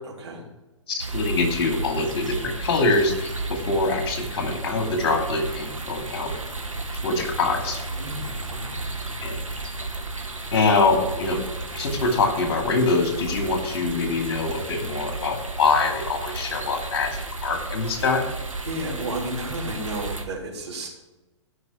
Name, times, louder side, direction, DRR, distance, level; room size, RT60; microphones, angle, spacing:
voice 1, 0.0-0.4 8.0-8.9 18.6-20.9, right 1 dB, 60° right, -2 dB, 3.5 m, -33 dB
voice 2, 0.9-6.3 7.0-7.8 9.2-9.4 10.5-11.4 11.7-18.3, left 3 dB, 50° left, 3 dB, 2.5 m, -24 dB
sound 1, 1.0-20.2, right 3 dB, 90° right, 1.6 m, -33 dB
15.5 x 5.7 x 6.1 m, 1.0 s
figure-of-eight pair, 115°, 16 cm